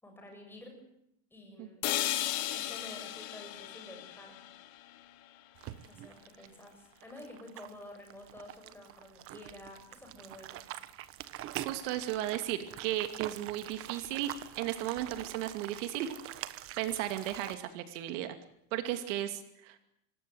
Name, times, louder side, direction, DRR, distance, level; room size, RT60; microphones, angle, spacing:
voice 1, 0.0-0.9 1.3-1.9 2.5-4.4 5.9-10.6 18.8-18.9, left 1 dB, 5° left, 2 dB, 7.7 m, -50 dB
sound 1, 1.8-5.8, left 14 dB, 75° left, 3.6 m, -36 dB
sound 2, 5.6-17.6, right 13 dB, 35° right, 1.2 m, -45 dB
voice 2, 11.5-16.1 16.4-18.3 18.7-19.8, right 13 dB, 65° right, 8 dB, 2.7 m, -35 dB
27.0 x 19.5 x 9.5 m, 0.78 s
cardioid pair, 170°, 40 cm